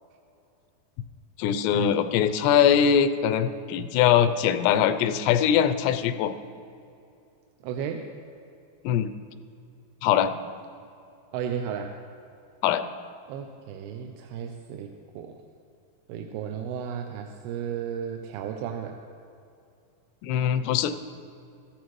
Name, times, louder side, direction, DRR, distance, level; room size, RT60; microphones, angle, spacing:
voice 1, 1.4-6.3 8.8-9.1 10.0-10.3 12.6-12.8 20.2-21.1, left 9 dB, 90° left, 10 dB, 2.7 m, -22 dB
voice 2, 7.6-8.1 11.3-12.0 13.3-15.4 16.1-19.0, right 8 dB, 80° right, 4 dB, 2.4 m, -34 dB
14.0 x 14.0 x 3.1 m, 2.6 s
omnidirectional pair, 4.8 m